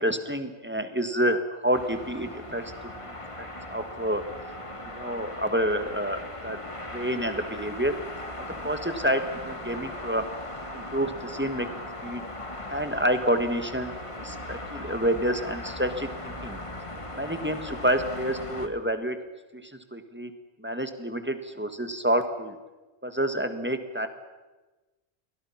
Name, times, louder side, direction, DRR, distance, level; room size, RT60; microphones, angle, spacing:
voice 1, 0.0-2.6 3.0-4.2 4.9-6.6 6.9-7.9 8.6-10.3 10.7-11.7 12.0-12.2 12.7-16.6 17.2-19.2 19.5-20.3 20.6-22.6 23.0-24.1, equal, 10° right, 8 dB, 1.8 m, -28 dB
sound 1, 1.7-18.7, left 1 dB, 30° left, 2.0 m, -38 dB
29.5 x 22.0 x 5.9 m, 1.2 s
omnidirectional pair, 1.1 m